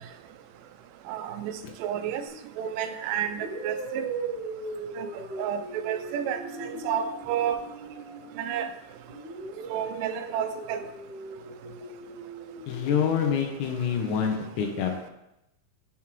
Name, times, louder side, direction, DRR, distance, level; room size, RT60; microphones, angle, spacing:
voice 1, 1.1-1.5 1.8-2.2 2.6-4.1 5.0-5.1 5.4-6.4 6.8-7.6 8.4-8.7 9.7-10.8, right 9 dB, 80° right, 9 dB, 2.1 m, -30 dB
sound 1, 2.3-2.5 3.3-8.7 9.1-13.0, right 3 dB, 65° right, 1.2 m, -39 dB
sound 2, 6.1-10.9, right 1 dB, 55° left, 2.4 m, -48 dB
voice 2, 12.7-14.9, left 7 dB, 75° left, 2 dB, 1.8 m, -26 dB
5.9 x 3.6 x 4.5 m, 0.89 s
omnidirectional pair, 4.0 m